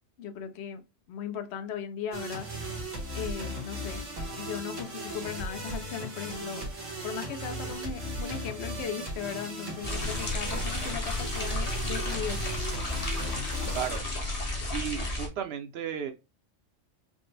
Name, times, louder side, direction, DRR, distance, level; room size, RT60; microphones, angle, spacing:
voice 1, 0.2-2.5 3.1-4.0 4.4-6.6 7.0-12.4, left 7 dB, 65° left, 0.9 m, -37 dB
sound 1, 2.1-14.0, right 1 dB, 90° right, 1.8 m, -37 dB
sound 2, 9.8-15.3, left 2 dB, 35° left, 0.9 m, -32 dB
voice 2, 14.7-16.1, right 9 dB, 60° right, 0.8 m, -34 dB
5.1 x 2.1 x 3.2 m
omnidirectional pair, 1.3 m